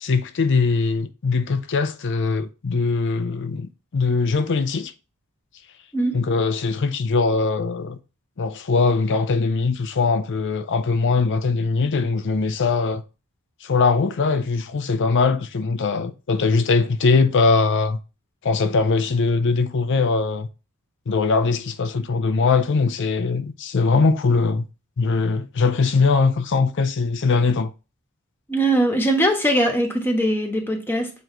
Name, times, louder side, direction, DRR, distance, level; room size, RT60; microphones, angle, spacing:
voice 1, 0.0-4.9 6.1-8.0 8.4-13.0 13.6-18.0 18.4-20.5 21.1-24.7 25.0-27.7, left 4 dB, 55° left, 0.5 m, -21 dB
voice 2, 28.5-31.1, right 1 dB, 10° left, 1.3 m, -21 dB
7.8 x 3.1 x 4.5 m
head